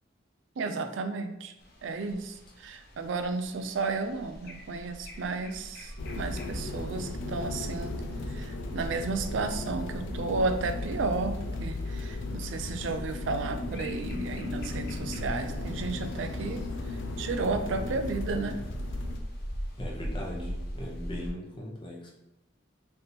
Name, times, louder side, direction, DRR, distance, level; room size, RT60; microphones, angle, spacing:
voice 1, 0.6-1.5 1.8-8.0 8.3-18.6, right 3 dB, 85° right, 7 dB, 0.4 m, -33 dB
sound 1, 1.6-21.3, equal, 55° left, 0.9 m, -42 dB
sound 2, 6.0-19.2, left 2 dB, 80° left, 0.5 m, -36 dB
voice 2, 19.8-22.1, left 1 dB, 25° left, -2 dB, 0.8 m, -39 dB
3.5 x 2.8 x 4.0 m, 0.92 s
head